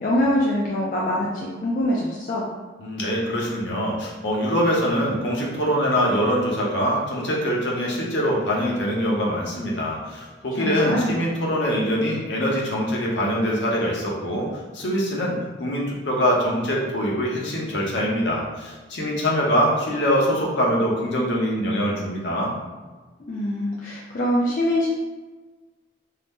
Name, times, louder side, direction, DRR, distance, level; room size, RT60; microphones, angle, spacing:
voice 1, 0.0-2.5 10.6-11.2 23.2-24.9, left 1 dB, 45° left, -4 dB, 0.3 m, -24 dB
voice 2, 2.8-14.5 14.7-22.5, equal, 70° left, -3 dB, 0.7 m, -23 dB
2.7 x 2.1 x 3.4 m, 1.3 s
head